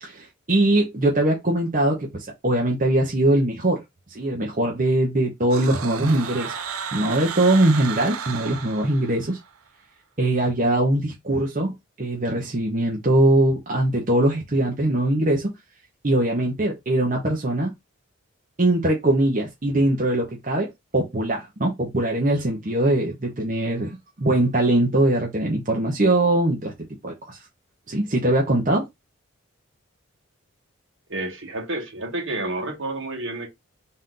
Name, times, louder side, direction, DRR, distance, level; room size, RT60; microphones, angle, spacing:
voice 1, 0.0-3.8 4.1-6.5 6.9-9.4 10.2-15.5 16.0-17.7 18.6-26.7 27.0-27.4 27.9-28.9, right 1 dB, 40° right, 0.9 m, -21 dB
sound 1, 5.5-9.5, right 7 dB, 90° right, 0.6 m, -33 dB
voice 2, 31.1-33.5, right 2 dB, 65° right, 1.5 m, -30 dB
4.1 x 2.5 x 3.8 m
head